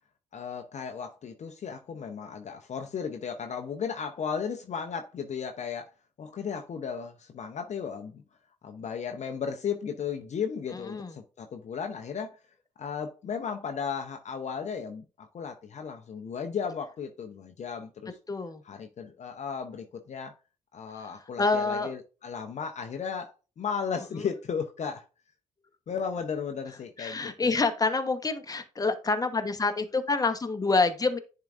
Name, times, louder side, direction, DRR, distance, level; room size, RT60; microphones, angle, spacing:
voice 1, 0.3-5.9 6.2-8.2 8.6-12.4 12.8-18.2 18.7-20.3 20.7-25.0 25.9-27.5, left 6 dB, 50° left, 0.7 m, -35 dB
voice 2, 10.8-11.2 18.3-18.6 21.4-21.9 24.1-24.3 27.0-31.2, left 3 dB, 25° left, 1.0 m, -27 dB
10.0 x 3.8 x 2.5 m
hypercardioid pair, 50°, 16 cm